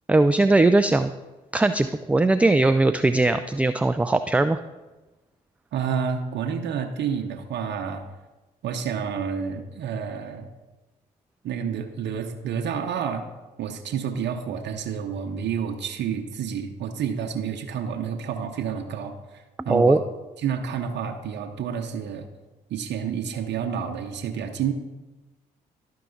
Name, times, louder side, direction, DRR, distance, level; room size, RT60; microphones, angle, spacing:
voice 1, 0.1-1.1 1.5-4.6 19.7-20.0, right 2 dB, 5° right, 10 dB, 0.3 m, -19 dB
voice 2, 5.7-8.1 8.6-10.5 11.4-13.2 13.6-20.0 20.4-22.3 22.7-24.7, right 7 dB, 60° right, 4 dB, 0.8 m, -29 dB
12.0 x 4.6 x 3.9 m, 1.1 s
hypercardioid pair, 45°, 20 cm